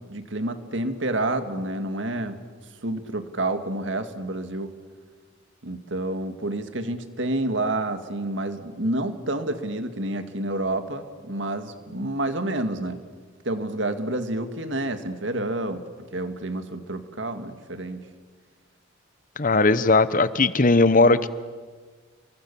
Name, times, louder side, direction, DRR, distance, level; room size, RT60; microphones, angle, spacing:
voice 1, 0.1-2.4 2.8-4.7 5.6-13.0 13.4-18.1, right 2 dB, 70° right, 8 dB, 2.1 m, -29 dB
voice 2, 19.4-21.3, left 3 dB, 45° left, 14 dB, 1.0 m, -18 dB
30.0 x 23.5 x 7.1 m, 1.5 s
head